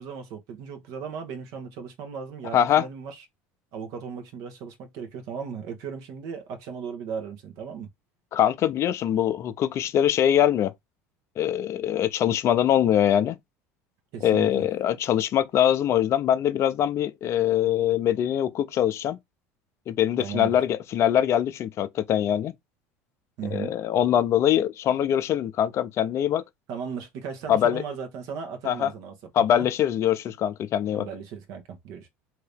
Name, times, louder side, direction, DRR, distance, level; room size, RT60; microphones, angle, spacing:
voice 1, 0.0-3.2 3.7-7.9 14.1-14.7 20.2-20.6 23.4-23.7 26.7-29.7 30.9-32.1, right 6 dB, 65° right, 1.0 m, -36 dB
voice 2, 2.5-2.8 8.3-10.7 11.4-13.4 14.2-19.2 19.9-22.5 23.5-26.4 27.5-27.8 28.6-28.9 29.3-31.1, left 10 dB, 45° left, 0.5 m, -23 dB
2.8 x 2.6 x 3.4 m
supercardioid pair, 90°, 6 cm